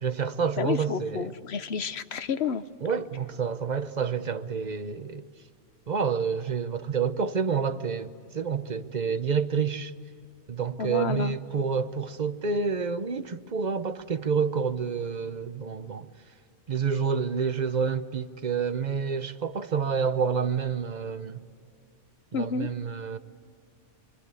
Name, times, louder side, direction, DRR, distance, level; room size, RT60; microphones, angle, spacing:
voice 1, 0.0-1.3 2.8-5.3 5.9-9.9 10.5-16.1 16.7-21.4 22.3-23.2, right 6 dB, 40° right, 0.8 m, -28 dB
voice 2, 0.6-2.6 10.8-11.4 22.3-22.7, left 6 dB, 60° left, 1.1 m, -30 dB
26.5 x 24.5 x 8.3 m
omnidirectional pair, 1.3 m